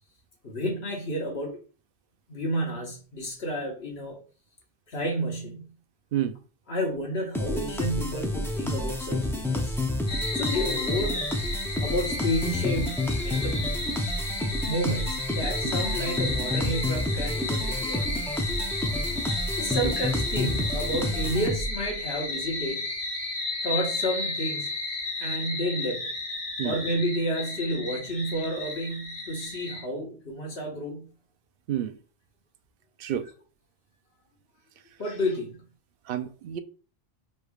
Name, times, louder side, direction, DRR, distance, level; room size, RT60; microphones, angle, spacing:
voice 1, 0.4-1.6 2.3-4.2 4.9-5.7 6.7-9.7 10.3-11.2 11.8-13.8 14.7-18.0 19.5-22.9 23.6-24.7 25.2-26.1 26.6-31.1 35.0-35.6, equal, 85° left, 1.6 m, -31 dB
sound 1, 7.3-21.9, left 1 dB, 5° left, 0.3 m, -29 dB
sound 2, 10.1-29.8, left 2 dB, 45° left, 2.0 m, -33 dB
voice 2, 36.1-36.6, right 11 dB, 70° right, 0.7 m, -29 dB
6.0 x 3.3 x 2.4 m
omnidirectional pair, 1.0 m